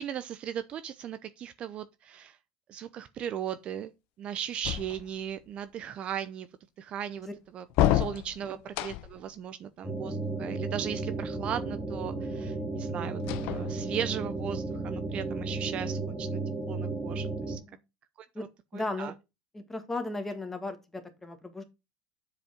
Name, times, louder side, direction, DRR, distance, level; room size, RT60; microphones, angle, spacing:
voice 1, 0.0-2.4 2.7-3.9 4.2-6.5 6.8-7.3 7.5-7.6 7.9-16.4 16.7-17.6 18.2-18.5 18.7-19.1, right 9 dB, 40° right, 0.6 m, -37 dB
sound 1, 4.6-5.4 7.7-9.3 13.2-14.2, left 13 dB, 60° left, 0.8 m, -29 dB
sound 2, 9.8-17.6, right 3 dB, 5° right, 1.8 m, -34 dB
voice 2, 18.7-19.1 19.5-21.6, left 2 dB, 10° left, 1.8 m, -35 dB
7.4 x 5.0 x 5.1 m
supercardioid pair, 110°, 3 cm